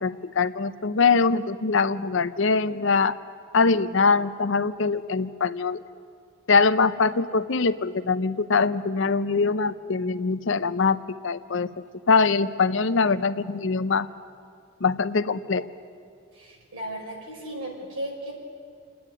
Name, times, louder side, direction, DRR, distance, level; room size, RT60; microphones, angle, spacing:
voice 1, 0.0-3.2 3.5-5.8 6.5-11.7 12.1-14.1 14.8-15.7, left 4 dB, 60° left, 13 dB, 0.6 m, -23 dB
voice 2, 16.3-18.3, right 1 dB, 90° right, -1 dB, 5.2 m, -35 dB
27.5 x 9.4 x 9.9 m, 2.4 s
head